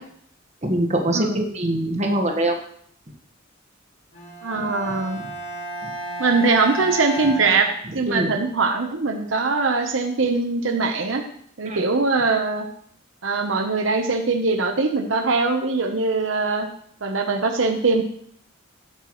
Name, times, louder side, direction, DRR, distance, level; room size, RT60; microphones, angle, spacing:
voice 1, 0.6-2.5 4.6-4.7 8.1-8.3 11.6-11.8, right 1 dB, 35° right, 3 dB, 1.5 m, -23 dB
voice 2, 1.1-1.4 4.4-5.2 6.2-7.7 7.9-11.2 11.6-12.6 13.2-16.7 17.0-18.0, right 3 dB, 75° right, 4 dB, 1.0 m, -22 dB
Bowed string instrument, 4.1-8.2, right 2 dB, 40° left, 4.9 m, -33 dB
16.0 x 8.1 x 3.2 m, 0.63 s
head